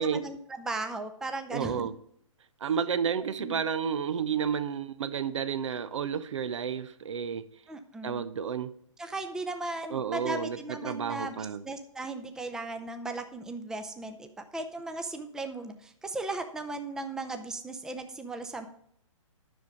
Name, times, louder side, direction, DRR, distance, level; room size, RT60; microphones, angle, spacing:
voice 1, 0.0-1.9 2.6-2.7 3.4-3.6 7.7-8.3 9.0-11.4 11.6-18.7, right 2 dB, 5° right, 0.6 m, -37 dB
voice 2, 1.5-1.9 2.6-7.5 8.0-8.7 9.9-11.6, right 7 dB, 65° right, 0.8 m, -31 dB
10.5 x 6.5 x 5.1 m
hypercardioid pair, 135°, 17 cm